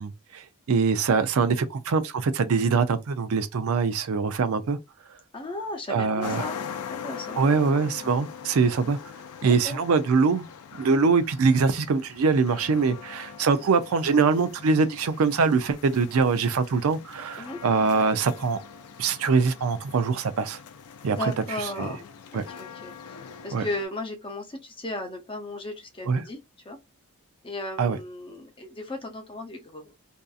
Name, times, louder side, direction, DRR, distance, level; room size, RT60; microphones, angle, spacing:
voice 1, 0.0-4.8 5.9-6.4 7.4-9.0 9.4-10.5 10.8-18.6 19.0-20.6 21.0-21.3 21.8-21.9 22.3-22.4 23.5-23.6 26.1-26.2 27.8-28.0, right 4 dB, 70° right, 0.4 m, -23 dB
voice 2, 5.3-6.6 6.9-7.4 8.0-8.1 9.4-9.8 17.4-17.6 21.2-26.4 26.6-26.8 27.4-29.9, left 1 dB, 25° left, 0.6 m, -36 dB
sound 1, 6.2-23.9, left 7 dB, 85° left, 0.4 m, -42 dB
2.6 x 2.4 x 2.3 m
head